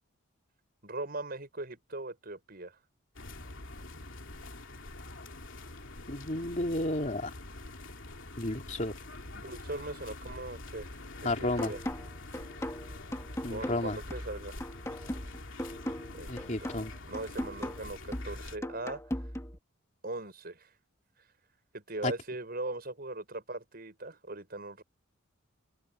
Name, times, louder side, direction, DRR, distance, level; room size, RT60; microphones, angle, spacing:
voice 1, 0.8-2.8 9.3-10.9 11.2-11.8 13.5-14.6 16.1-16.8 17.1-19.0 20.0-20.7 21.7-24.8, right 2 dB, 45° right, 6.0 m, -40 dB
sound 1, 3.1-18.6, left 2 dB, 60° left, 2.9 m, -45 dB
voice 2, 6.1-7.3 8.4-8.9 11.2-11.7 13.4-14.0 16.3-16.9 22.0-22.1, left 1 dB, 35° left, 3.3 m, -32 dB
sound 2, 11.6-19.6, equal, 15° left, 1.7 m, -39 dB
head